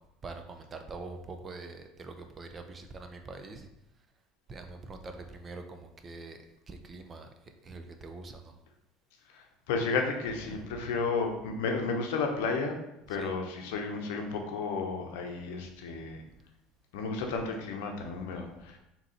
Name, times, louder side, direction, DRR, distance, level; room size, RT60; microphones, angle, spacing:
voice 1, 0.2-3.7 4.0-4.1 4.5-8.6 10.3-11.0 13.1-13.4 16.1-16.4 18.2-18.7, right 3 dB, 30° right, 6 dB, 0.5 m, -45 dB
voice 2, 9.3-12.7 13.1-16.2 16.9-18.8, left 4 dB, 80° left, 3 dB, 0.7 m, -32 dB
3.7 x 2.9 x 4.2 m, 0.88 s
supercardioid pair, 90°, 0 cm